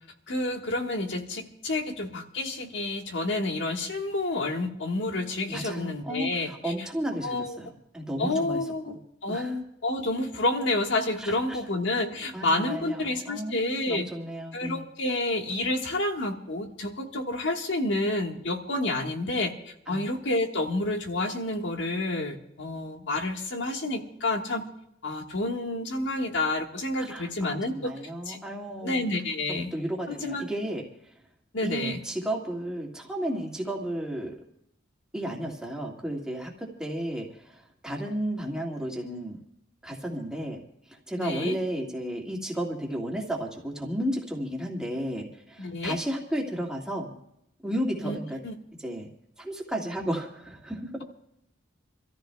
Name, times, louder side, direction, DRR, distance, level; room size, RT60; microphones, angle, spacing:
voice 1, 0.3-6.7 7.2-7.6 8.2-9.0 9.2-14.1 14.5-24.7 25.0-27.9 28.2-28.4 28.8-29.7 30.1-30.5 31.5-32.0 41.2-41.6 45.6-46.0 48.0-48.2 48.4-48.5, left 2 dB, 65° left, 3 dB, 1.5 m, -29 dB
voice 2, 5.5-8.6 8.9-9.0 9.3-9.5 11.2-11.6 12.3-13.6 13.9-14.8 19.9-20.0 27.0-29.1 29.5-30.8 31.6-34.4 35.1-39.4 39.8-40.6 40.9-47.1 47.6-48.4 48.8-49.1 49.4-50.9, right 1 dB, 5° right, -2 dB, 1.9 m, -33 dB
28.0 x 14.0 x 2.3 m, 0.77 s
head